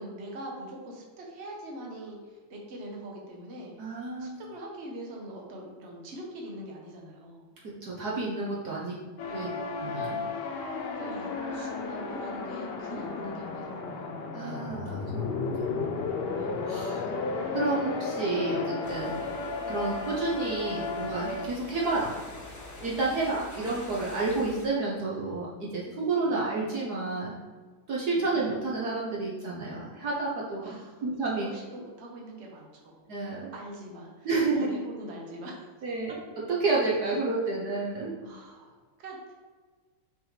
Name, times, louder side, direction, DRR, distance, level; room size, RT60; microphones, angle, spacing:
voice 1, 0.0-3.7 4.2-7.4 8.7-9.0 9.3-9.6 11.0-14.1 16.6-16.8 26.2-26.3 28.1-28.2 30.6-30.9 31.2-33.1 33.5-35.7 37.0-37.1 38.2-38.7 39.0-39.3, right 1 dB, 40° right, -1 dB, 1.3 m, -43 dB
voice 2, 3.8-4.4 7.8-8.9 9.3-9.5 9.8-10.2 11.4-11.7 14.3-15.8 16.4-17.1 17.5-19.1 19.7-22.2 22.8-27.3 27.9-30.8 31.0-31.5 33.1-33.5 34.2-34.7 35.8-36.2 36.5-38.1, right 3 dB, 60° right, -4 dB, 1.4 m, -30 dB
sound 1, 9.2-21.5, left 4 dB, 65° left, 1.3 m, -33 dB
sound 2, 18.8-24.6, left 1 dB, 15° left, 0.8 m, -46 dB
6.1 x 6.1 x 3.3 m, 1.5 s
omnidirectional pair, 2.1 m